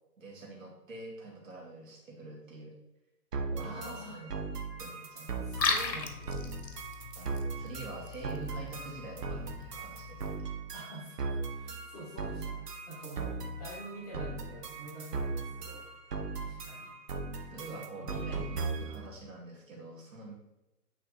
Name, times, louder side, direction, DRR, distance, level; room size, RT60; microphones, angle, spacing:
voice 1, 0.2-2.8 3.5-4.3 4.8-5.4 7.2-10.5 17.5-20.3, right 2 dB, 50° right, -2 dB, 2.4 m, -46 dB
sound 1, 3.3-19.1, right 4 dB, 70° right, 1.2 m, -38 dB
voice 2, 3.6-4.2 5.4-6.7 10.7-15.9 16.4-17.0 17.9-18.4, right 1 dB, ahead, -15 dB, 1.1 m, -47 dB
Liquid, 5.4-10.4, left 4 dB, 80° left, 1.3 m, -37 dB
8.8 x 3.3 x 4.0 m, 0.95 s
hypercardioid pair, 165°, 48 cm